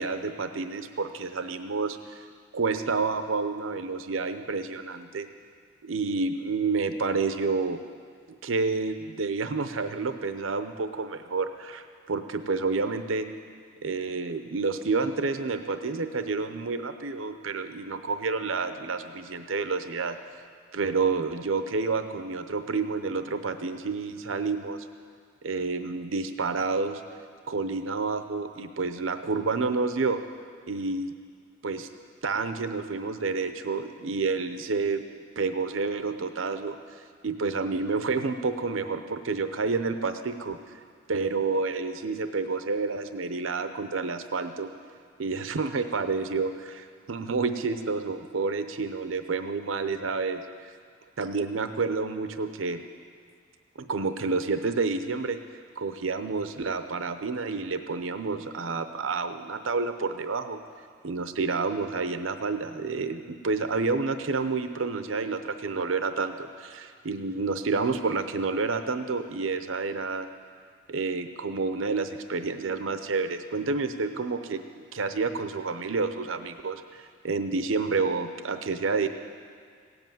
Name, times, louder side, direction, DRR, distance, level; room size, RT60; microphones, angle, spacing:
voice 1, 0.0-2.2 2.5-5.3 5.8-7.8 8.4-13.3 13.8-20.2 20.7-24.9 25.4-27.0 27.5-30.2 30.7-31.1 31.6-31.9 32.2-35.0 35.4-36.8 37.2-40.6 41.1-44.7 45.2-50.7 51.2-52.8 53.8-55.4 55.8-60.6 61.0-70.3 70.9-74.6 74.9-79.1, right 4 dB, 90° right, 9 dB, 0.7 m, -29 dB
16.5 x 8.0 x 9.1 m, 2.1 s
head